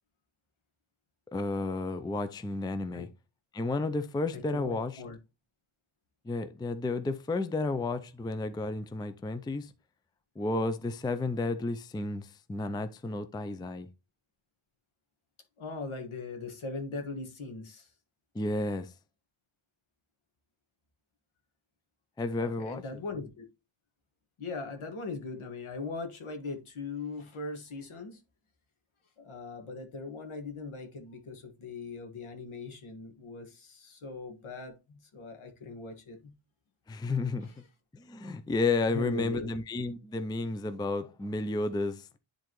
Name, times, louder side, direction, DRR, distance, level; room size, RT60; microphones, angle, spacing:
voice 1, 1.3-3.1 3.5-4.9 6.2-9.7 10.4-13.9 18.3-18.9 22.2-22.8 36.9-37.5 37.9-42.1, left 3 dB, 10° left, 0.4 m, -32 dB
voice 2, 4.3-5.2 15.6-17.9 22.4-23.4 24.4-28.2 29.2-36.3 37.4-37.6 38.9-39.5, left 3 dB, 75° left, 1.7 m, -40 dB
10.5 x 3.9 x 3.0 m
wide cardioid pair, 130°, 49 cm